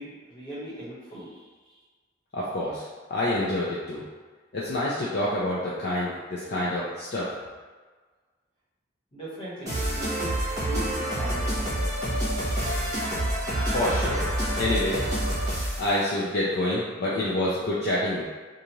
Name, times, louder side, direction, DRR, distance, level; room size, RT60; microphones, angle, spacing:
voice 1, 0.0-1.4 9.1-11.9, right 1 dB, 30° left, -10 dB, 1.1 m, -39 dB
voice 2, 2.3-2.8 3.1-4.1 4.5-7.3 13.7-14.3 14.6-15.0 15.8-18.2, left 1 dB, 55° left, -7 dB, 0.4 m, -27 dB
sound 1, 9.7-15.9, right 1 dB, 20° right, 1.0 m, -27 dB
2.6 x 2.4 x 2.9 m, 1.4 s
head